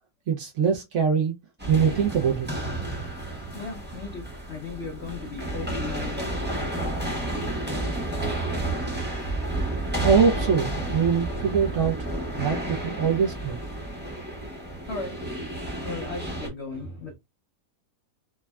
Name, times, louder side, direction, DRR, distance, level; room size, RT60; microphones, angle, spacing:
voice 1, 0.3-1.3 1.7-2.6 10.0-11.9 12.4-13.6, right 6 dB, 70° right, 0.7 m, -23 dB
sound 1, 1.6-16.5, right 2 dB, 10° right, 0.5 m, -31 dB
voice 2, 3.5-6.8 12.8-12.9 14.9-15.2 15.8-17.1, left 4 dB, 65° left, 0.7 m, -37 dB
3.4 x 2.1 x 2.2 m
omnidirectional pair, 1.7 m